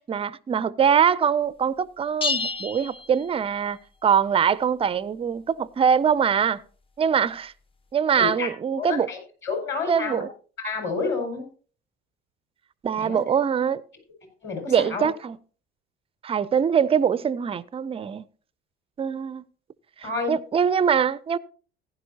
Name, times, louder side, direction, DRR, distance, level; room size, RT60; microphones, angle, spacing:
voice 1, 0.0-6.6 7.0-7.5 7.9-9.1 9.9-10.3 12.8-13.8 14.7-15.4 16.2-18.2 19.0-19.4 20.0-21.4, right 7 dB, 20° right, 0.4 m, -23 dB
sound 1, 2.2-3.8, left 4 dB, 20° left, 0.7 m, -30 dB
voice 2, 8.1-10.2 10.6-11.5 13.0-13.2 14.4-15.1 20.0-20.3, left 4 dB, 40° left, 5.3 m, -30 dB
15.0 x 11.0 x 2.8 m
figure-of-eight pair, 60°, 30 cm